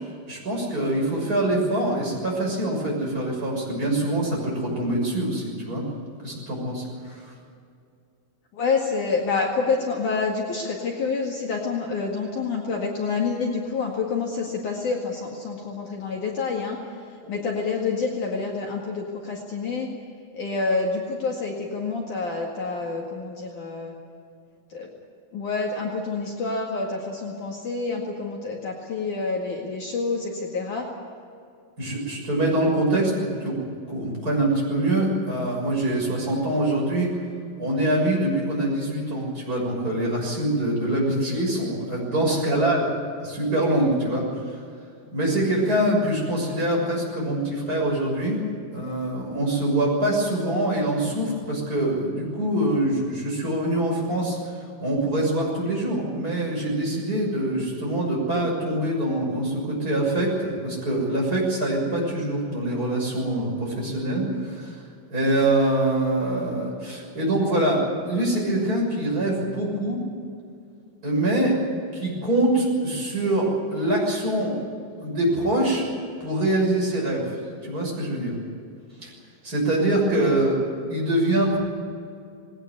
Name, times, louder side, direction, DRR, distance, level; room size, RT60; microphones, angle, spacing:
voice 1, 0.3-5.8 6.2-7.2 17.2-17.3 31.8-33.6 33.9-37.1 37.6-42.8 43.2-44.2 45.1-48.4 48.7-54.5 54.8-64.8 65.1-70.0 71.0-71.5 71.9-74.5 75.0-75.9 76.2-77.3 77.6-78.3 79.0-79.1 79.4-80.6 80.9-81.6, right 1 dB, 20° right, -2 dB, 6.8 m, -24 dB
voice 2, 8.5-16.8 17.3-19.9 20.3-23.9 24.7-24.9 25.3-30.9 42.5-42.6, left 4 dB, 55° left, -1 dB, 3.2 m, -28 dB
20.0 x 18.5 x 9.7 m, 2.4 s
omnidirectional pair, 4.5 m